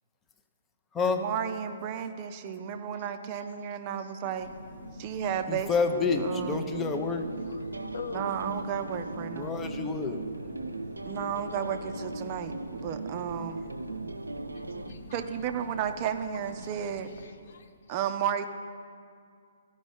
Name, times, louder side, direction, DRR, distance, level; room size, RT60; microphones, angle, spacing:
voice 1, 1.0-4.5 5.0-6.8 8.1-9.5 11.1-13.7 14.9-17.1 17.9-18.5, right 8 dB, 35° right, 8 dB, 0.5 m, -33 dB
sound 1, 4.4-17.3, equal, 80° left, 1.5 m, -44 dB
voice 2, 5.5-7.3 9.4-10.2, left 5 dB, 15° left, 6 dB, 0.7 m, -28 dB
sound 2, 6.1-14.9, right 3 dB, 90° right, 0.4 m, -39 dB
voice 3, 7.4-8.4 14.5-15.2 17.1-17.7, left 4 dB, 60° left, 7 dB, 0.7 m, -44 dB
14.5 x 5.3 x 5.4 m, 2.2 s
figure-of-eight pair, 130°, 0 cm